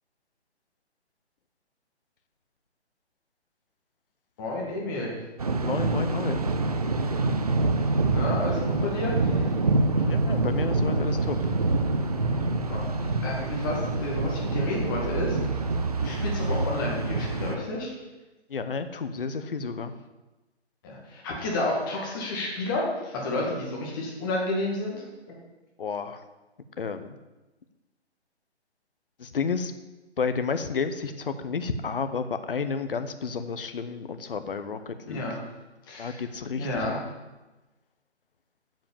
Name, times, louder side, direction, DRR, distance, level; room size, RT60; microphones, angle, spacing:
voice 1, 4.4-5.1 8.1-9.5 10.0-10.1 12.7-15.4 16.0-17.9 20.8-25.0 25.3-25.4 35.1-35.4 35.9-36.2 36.6-37.0, left 2 dB, 20° left, -3 dB, 2.0 m, -31 dB
Thunder, 5.4-17.6, right 3 dB, 35° right, 0.5 m, -26 dB
voice 2, 5.6-6.4 10.1-11.6 18.5-19.9 25.8-26.2 26.8-27.2 29.2-29.7 30.2-35.4 36.0-37.0, left 5 dB, 55° left, 10 dB, 0.9 m, -31 dB
7.6 x 7.2 x 7.2 m, 1.1 s
hypercardioid pair, 160°, 34 cm